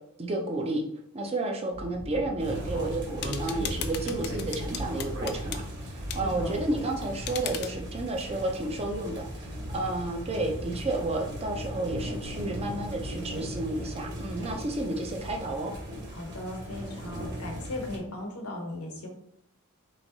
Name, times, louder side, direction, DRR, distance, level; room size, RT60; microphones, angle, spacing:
voice 1, 0.2-0.8 1.1-15.7, right 2 dB, 25° right, 2 dB, 0.6 m, -31 dB
Speech, 1.7-6.6, equal, 75° right, 1.6 m, -38 dB
sound 1, 2.4-18.0, equal, 50° right, 1.5 m, -38 dB
sound 2, 3.2-5.6 6.1-6.2 7.3-7.7, left 9 dB, 50° left, 0.4 m, -37 dB
voice 2, 6.1-6.6 16.1-19.1, left 1 dB, 80° left, 1 dB, 1.1 m, -37 dB
3.4 x 3.2 x 4.1 m, 0.72 s
head